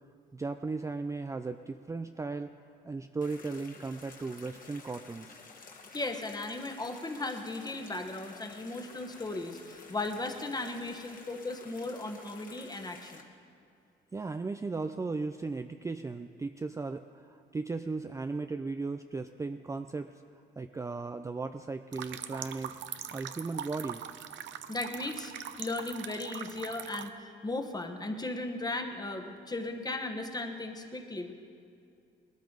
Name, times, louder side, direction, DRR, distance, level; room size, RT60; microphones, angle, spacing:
voice 1, 0.3-2.5 2.8-5.4 14.1-20.1 20.6-22.8 23.1-24.0, right 3 dB, 15° right, 8 dB, 0.4 m, -36 dB
sound 1, 3.2-13.2, left 4 dB, 45° left, 1.7 m, -52 dB
voice 2, 5.9-13.2 24.7-25.3 25.6-31.3, left 2 dB, 20° left, 5 dB, 1.3 m, -36 dB
sound 2, 21.9-27.1, right 9 dB, 70° right, 0.7 m, -42 dB
19.0 x 13.5 x 4.0 m, 2.5 s
cardioid pair, 90°, 20 cm